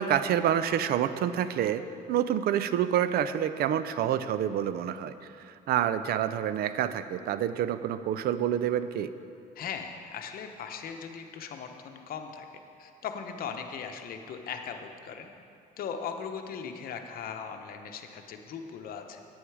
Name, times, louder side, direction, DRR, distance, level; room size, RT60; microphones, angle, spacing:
voice 1, 0.0-1.8 2.1-5.1 5.4-9.1, right 10 dB, 65° right, 13 dB, 0.5 m, -27 dB
voice 2, 9.6-12.4 12.8-15.3 15.8-19.2, left 6 dB, 60° left, 5 dB, 0.9 m, -39 dB
10.0 x 8.9 x 4.8 m, 2.5 s
cardioid pair, 110°, 17 cm